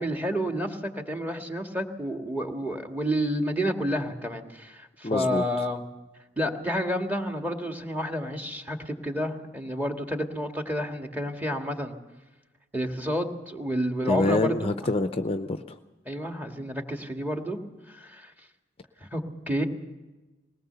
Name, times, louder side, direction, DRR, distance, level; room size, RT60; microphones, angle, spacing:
voice 1, 0.0-5.8 6.4-12.0 12.7-14.7 16.1-17.6 17.9-18.3 19.0-19.6, equal, 10° right, 4 dB, 1.8 m, -30 dB
voice 2, 5.0-5.4 14.1-15.8, left 2 dB, 35° left, 9 dB, 0.6 m, -26 dB
20.5 x 19.0 x 6.9 m, 1.2 s
head